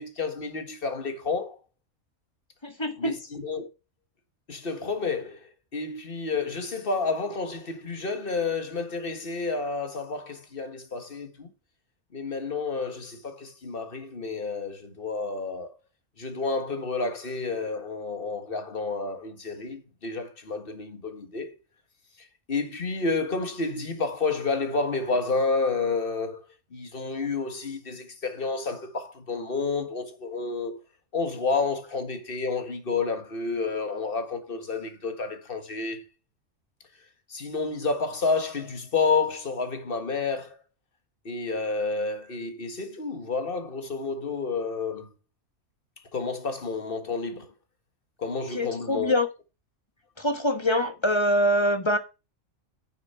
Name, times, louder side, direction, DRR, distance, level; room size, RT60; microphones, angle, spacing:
voice 1, 0.0-1.6 3.0-3.7 4.5-11.5 12.1-15.7 16.2-21.5 22.5-26.4 26.7-30.8 31.1-36.0 37.3-40.6 41.3-45.1 46.1-47.5 48.2-49.2, left 4 dB, 45° left, 1.9 m, -30 dB
voice 2, 2.6-3.1 48.5-49.3 50.2-52.0, equal, 20° left, 1.3 m, -24 dB
9.2 x 7.5 x 4.5 m
omnidirectional pair, 1.3 m